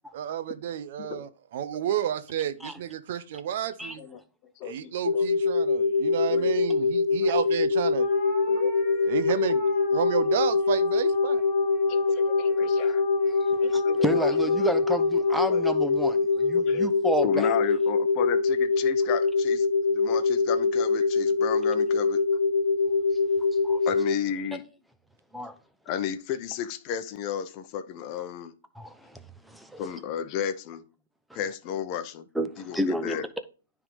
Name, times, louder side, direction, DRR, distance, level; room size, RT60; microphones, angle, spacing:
voice 1, 0.1-4.0 4.7-8.1 9.0-9.6 9.9-11.4, right 10 dB, 55° right, 0.7 m, -31 dB
voice 2, 4.0-5.3 5.7-5.9 6.3-6.6 8.5-8.7 11.9-13.0 13.3-14.1 14.5-14.7 15.4-15.6 16.4-16.9 17.2-19.7 19.9-22.4 23.9-24.6 25.9-28.5 29.8-30.8 31.3-32.3 32.6-33.3, left 9 dB, 35° left, 0.8 m, -33 dB
sound 1, 5.0-24.1, left 4 dB, 90° left, 0.6 m, -24 dB
sound 2, 8.0-16.6, left 2 dB, 15° left, 2.8 m, -42 dB
voice 3, 13.6-17.5 23.6-23.8 25.3-25.5 28.8-30.0 31.3-31.4 32.3-33.2, equal, ahead, 0.8 m, -31 dB
9.8 x 3.6 x 5.3 m
hypercardioid pair, 135°, 0 cm